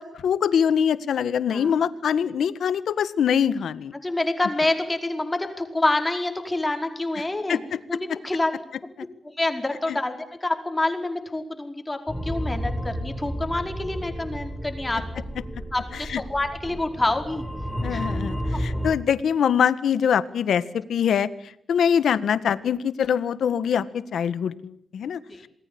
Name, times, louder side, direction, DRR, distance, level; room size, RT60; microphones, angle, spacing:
voice 1, 0.0-3.9 7.5-7.8 9.9-10.0 16.1-16.2 17.8-21.3 21.7-25.5, left 8 dB, 85° left, 14 dB, 1.7 m, -23 dB
voice 2, 4.0-7.6 7.9-8.5 9.2-15.0 15.7-17.4 17.9-18.1 25.3-25.4, left 2 dB, 15° left, 5 dB, 4.8 m, -27 dB
sound 1, 12.1-19.0, equal, 5° right, 5.2 m, -31 dB
28.0 x 20.0 x 8.8 m, 0.71 s
cardioid pair, 100°, 0 cm